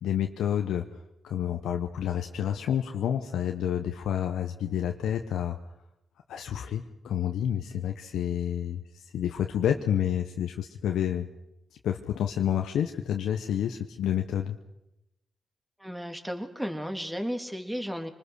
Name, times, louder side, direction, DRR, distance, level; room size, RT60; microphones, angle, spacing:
voice 1, 0.0-5.6 6.3-11.3 11.8-14.6, left 10 dB, 80° left, 5 dB, 0.9 m, -29 dB
voice 2, 15.8-18.1, equal, 10° right, 5 dB, 3.0 m, -34 dB
25.0 x 20.0 x 6.4 m, 0.91 s
supercardioid pair, 45°, 0 cm